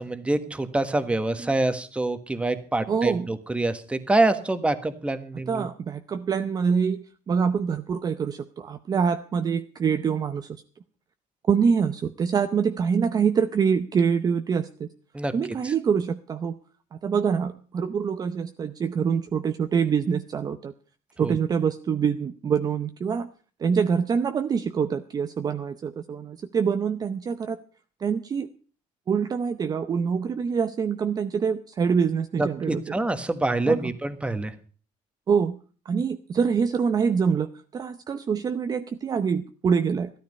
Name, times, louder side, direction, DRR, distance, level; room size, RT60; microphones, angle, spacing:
voice 1, 0.0-5.7 15.1-15.3 15.6-15.7 21.2-21.4 32.4-34.5, right 2 dB, 10° right, 10 dB, 1.3 m, -26 dB
voice 2, 2.9-3.3 5.5-10.6 11.5-14.9 15.3-16.6 16.9-20.7 21.2-23.3 23.6-27.6 28.0-28.5 29.1-32.8 33.7-33.8 35.3-35.6 35.9-40.1, right 6 dB, 30° right, 9 dB, 0.7 m, -25 dB
14.5 x 13.0 x 5.4 m, 0.39 s
cardioid pair, 150°, 13 cm